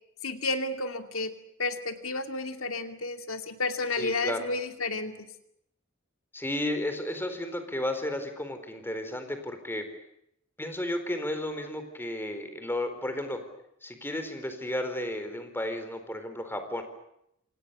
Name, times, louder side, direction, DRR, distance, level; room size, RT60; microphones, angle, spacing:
voice 1, 0.2-1.3 1.6-5.1, left 3 dB, 85° left, 7 dB, 2.6 m, -31 dB
voice 2, 3.9-4.5 6.3-9.9 10.6-13.4 13.8-16.8, left 1 dB, 10° left, 8 dB, 4.3 m, -33 dB
28.0 x 28.0 x 6.9 m, 0.76 s
head